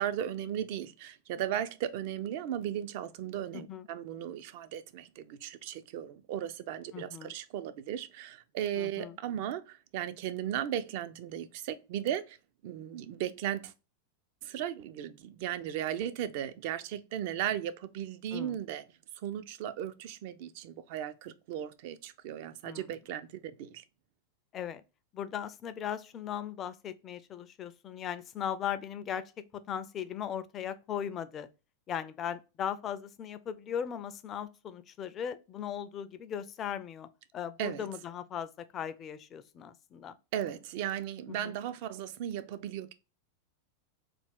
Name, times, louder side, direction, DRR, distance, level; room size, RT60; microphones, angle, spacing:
voice 1, 0.0-12.4 12.6-13.7 14.4-18.8 19.2-23.8 37.6-37.8 40.3-42.9, right 10 dB, 50° right, 0.3 m, -36 dB
voice 2, 3.5-3.9 6.9-7.3 8.7-9.2 18.3-18.6 22.6-22.9 24.5-24.8 25.1-29.2 29.7-31.5 31.9-40.2 41.3-41.6, left 9 dB, 30° left, 0.3 m, -38 dB
3.3 x 2.3 x 3.3 m
figure-of-eight pair, 90°, 0 cm